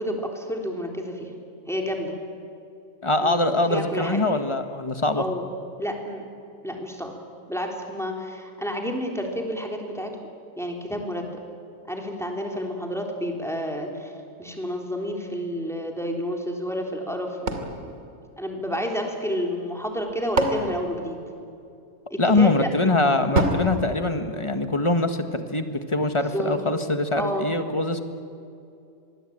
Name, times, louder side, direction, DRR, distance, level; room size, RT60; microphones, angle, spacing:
voice 1, 0.0-1.3 1.7-2.2 3.2-4.2 5.2-5.5 5.8-6.2 6.6-7.2 7.5-10.1 10.6-11.2 11.9-14.1 14.4-18.0 18.4-21.2 22.1-22.7 26.3-26.6 27.2-27.5, equal, ahead, 1 dB, 3.6 m, -30 dB
voice 2, 3.0-5.2 22.2-28.0, left 2 dB, 25° left, 8 dB, 1.6 m, -23 dB
sound 1, 17.5-19.0 19.9-21.8 23.3-24.9, right 2 dB, 85° right, 2.9 m, -29 dB
25.5 x 21.0 x 8.9 m, 2.5 s
omnidirectional pair, 1.4 m